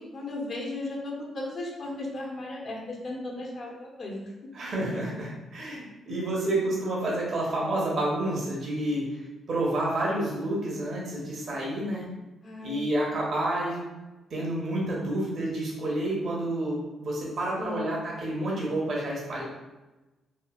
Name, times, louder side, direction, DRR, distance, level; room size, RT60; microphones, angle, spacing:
voice 1, 0.0-4.3 12.4-12.9 17.6-18.0, left 2 dB, 55° left, -2 dB, 0.8 m, -36 dB
voice 2, 4.5-9.1 9.5-12.0 12.6-13.8 14.3-19.4, right 1 dB, 55° right, -4 dB, 0.9 m, -29 dB
3.0 x 2.7 x 2.4 m, 1.1 s
hypercardioid pair, 45°, 0 cm